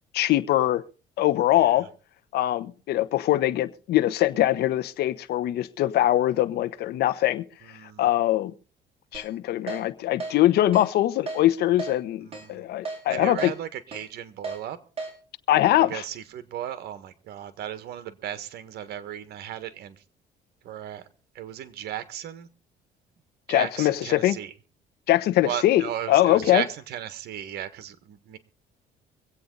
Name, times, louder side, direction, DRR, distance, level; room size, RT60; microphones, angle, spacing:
voice 1, 0.1-0.8 1.2-1.8 2.3-7.4 8.0-8.5 9.1-13.5 15.5-16.0 23.5-24.4 25.1-25.8 26.1-26.6, left 14 dB, 70° left, 1.0 m, -22 dB
voice 2, 1.5-1.9 7.6-8.0 12.2-12.6 13.1-14.8 15.8-20.0 20.6-21.1 21.3-22.5 23.5-24.5 25.4-28.4, right 10 dB, 70° right, 1.6 m, -35 dB
Keyboard (musical), 9.1-9.3 9.7-9.8 10.2-10.3 10.7-10.9 11.3-11.4 11.8-11.9 12.3-12.5 12.9-13.0 13.4-13.5 13.9-14.0 14.4-14.6 15.0-15.1, right 3 dB, 35° right, 4.9 m, -33 dB
24.5 x 8.5 x 4.0 m
cardioid pair, 110°, 17 cm